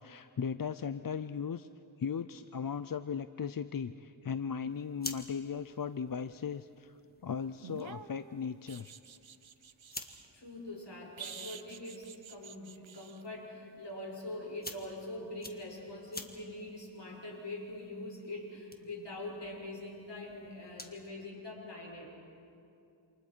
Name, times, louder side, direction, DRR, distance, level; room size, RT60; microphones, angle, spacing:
voice 1, 0.0-1.7 2.0-6.9 7.2-8.9, left 6 dB, 45° left, 12 dB, 0.5 m, -37 dB
sound 1, 4.7-21.1, left 2 dB, 20° left, 1.6 m, -52 dB
sound 2, 7.6-10.3 11.2-13.2 15.9-16.0, right 7 dB, 75° right, 0.8 m, -49 dB
voice 2, 10.3-22.1, left 2 dB, 60° left, -2 dB, 5.9 m, -43 dB
28.5 x 27.0 x 4.5 m, 2.7 s
wide cardioid pair, 60°, 47 cm